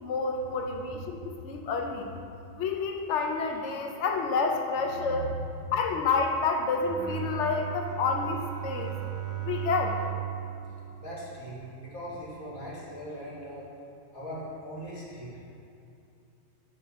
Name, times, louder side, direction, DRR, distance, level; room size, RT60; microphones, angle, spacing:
voice 1, 0.0-1.2 1.4-2.1 2.6-5.4 5.7-8.9 9.4-10.0, left 4 dB, 65° left, 3 dB, 0.9 m, -29 dB
voice 2, 5.0-6.0 11.0-13.7 14.1-15.4, right 1 dB, 90° left, -6 dB, 1.9 m, -39 dB
Bowed string instrument, 6.7-12.0, right 12 dB, 65° right, 0.7 m, -37 dB
5.7 x 3.6 x 5.5 m, 2.7 s
omnidirectional pair, 1.4 m